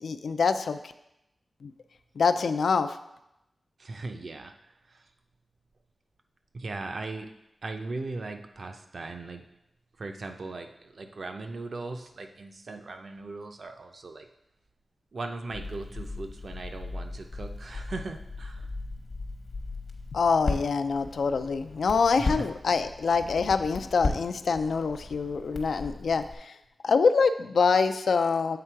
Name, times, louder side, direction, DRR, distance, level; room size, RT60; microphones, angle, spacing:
voice 1, 0.0-0.8 1.6-1.7 2.2-3.0 20.1-26.2 26.8-28.6, left 5 dB, 85° left, 9 dB, 0.3 m, -25 dB
voice 2, 3.8-4.5 6.5-7.3 7.6-9.4 10.0-14.3 15.1-18.6 22.2-22.5, right 3 dB, 55° right, 5 dB, 0.6 m, -38 dB
Crackle, 15.5-26.3, left 3 dB, 50° left, 0.9 m, -36 dB
7.7 x 3.7 x 4.5 m, 0.85 s
wide cardioid pair, 125°, 0 cm